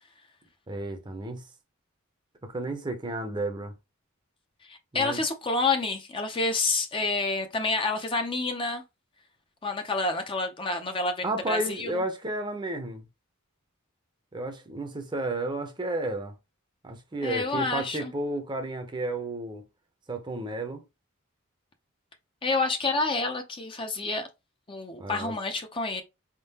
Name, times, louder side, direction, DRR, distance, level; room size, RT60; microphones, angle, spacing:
voice 1, 0.7-1.5 2.4-3.7 4.9-5.2 11.2-13.1 14.3-16.3 16.8-19.6 20.1-20.8 25.0-25.3, right 2 dB, 20° right, 0.7 m, -32 dB
voice 2, 4.6-8.8 9.6-11.9 17.2-18.1 22.4-24.3 24.7-26.0, left 3 dB, 25° left, 0.6 m, -28 dB
4.3 x 3.7 x 2.8 m
head